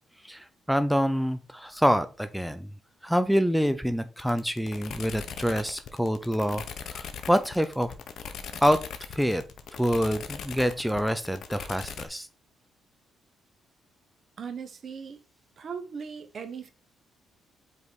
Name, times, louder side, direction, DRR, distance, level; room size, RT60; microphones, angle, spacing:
voice 1, 0.2-2.7 3.0-6.6 6.9-7.9 8.6-8.8 9.1-9.4 9.7-12.3, equal, ahead, 0.5 m, -26 dB
sound 1, 4.2-12.1, left 7 dB, 65° left, 0.9 m, -39 dB
voice 2, 14.4-15.2 15.6-16.7, right 6 dB, 50° right, 1.0 m, -38 dB
5.4 x 4.6 x 4.0 m
cardioid pair, 90°, 0 cm